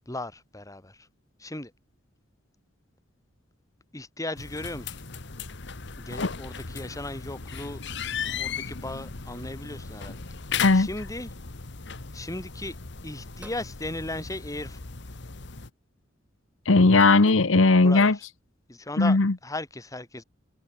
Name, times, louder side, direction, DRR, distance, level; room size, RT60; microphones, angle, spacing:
voice 1, 0.1-1.1 1.4-1.7 3.9-5.0 6.0-7.8 8.2-10.3 10.7-11.3 12.1-12.8 13.0-14.8 17.8-18.2 18.7-20.2, left 2 dB, 15° left, 2.4 m, -36 dB
sound 1, 4.4-15.7, left 6 dB, 60° left, 1.5 m, -37 dB
sound 2, 13.4-13.7 14.9-15.3 16.9-17.6, right 1 dB, 5° right, 4.4 m, -50 dB
voice 2, 16.7-18.2 19.0-19.3, left 3 dB, 85° left, 1.1 m, -18 dB
head